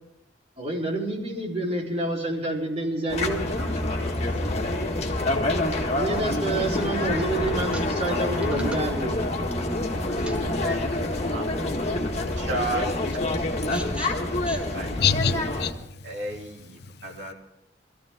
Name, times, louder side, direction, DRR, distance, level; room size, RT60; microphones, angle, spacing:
voice 1, 0.6-3.4 6.0-9.2, right 2 dB, 35° right, 4.2 m, -28 dB
sound 1, 3.1-15.7, left 2 dB, 40° left, 2.0 m, -27 dB
voice 2, 3.2-4.1 4.4-4.5 7.7-7.8 10.1-10.8 13.7-14.1 14.5-14.6, equal, 5° right, 1.4 m, -41 dB
voice 3, 12.4-13.3 14.7-15.0 16.0-17.3, right 2 dB, 70° right, 3.3 m, -32 dB
voice 4, 15.0-16.5 16.8-17.3, left 7 dB, 65° left, 0.7 m, -28 dB
24.0 x 14.5 x 3.8 m
head